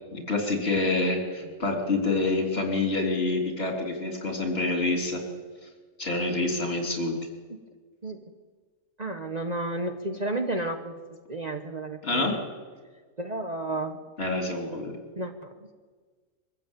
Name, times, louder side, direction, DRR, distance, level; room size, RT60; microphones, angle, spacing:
voice 1, 0.1-5.2 6.0-7.1 12.0-12.4 14.2-14.9, left 2 dB, 45° left, 2 dB, 3.8 m, -27 dB
voice 2, 9.0-10.9 11.3-12.3 13.2-14.0 15.2-15.5, right 2 dB, 30° right, 5 dB, 1.2 m, -32 dB
23.5 x 14.5 x 9.1 m, 1.5 s
omnidirectional pair, 1.4 m